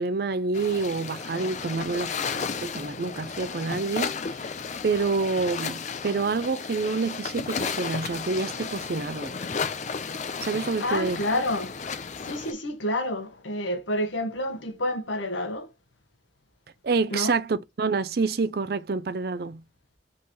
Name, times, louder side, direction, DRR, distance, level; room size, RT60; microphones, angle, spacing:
voice 1, 0.0-4.2 4.8-9.3 10.4-11.2 16.8-19.6, right 4 dB, 55° right, 0.5 m, -27 dB
sound 1, 0.5-12.5, left 5 dB, 40° left, 0.5 m, -33 dB
voice 2, 10.8-11.7 12.2-15.7 17.1-17.3, left 1 dB, 90° left, 1.2 m, -29 dB
3.8 x 3.1 x 4.2 m
head